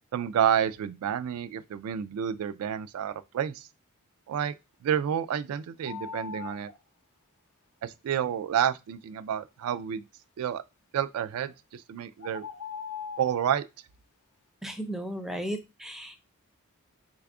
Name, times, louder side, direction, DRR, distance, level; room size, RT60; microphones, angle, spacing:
voice 1, 0.1-3.7 4.3-4.5 4.8-6.7 7.8-10.0 10.4-10.6 10.9-12.4 13.2-13.6, right 9 dB, 75° right, 0.3 m, -29 dB
sound 1, 5.8-6.8 11.3-11.5 12.2-13.5, left 6 dB, 75° left, 0.6 m, -40 dB
voice 2, 14.6-16.2, right 1 dB, ahead, 0.4 m, -35 dB
3.3 x 2.3 x 3.5 m
head